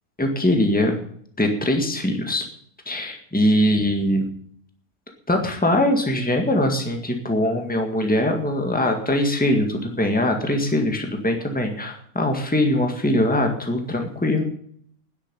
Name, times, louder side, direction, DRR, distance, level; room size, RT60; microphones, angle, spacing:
voice 1, 0.2-1.0 1.4-2.5 2.9-4.2 5.3-14.4, left 1 dB, 5° left, 3 dB, 1.8 m, -22 dB
10.5 x 8.3 x 9.8 m, 0.63 s
omnidirectional pair, 1.5 m